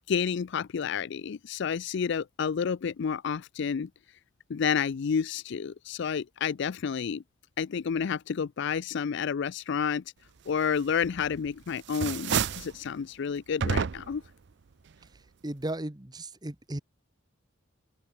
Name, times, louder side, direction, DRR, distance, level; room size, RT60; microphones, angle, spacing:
voice 1, 0.1-3.9 4.5-7.2 7.6-10.0 10.5-14.2, left 6 dB, 60° left, 0.4 m, -30 dB
sound 1, 11.0-11.5 11.8-12.8 13.6-14.3, right 6 dB, 60° right, 0.5 m, -29 dB
voice 2, 15.4-16.8, right 1 dB, 20° right, 1.4 m, -35 dB
open air
head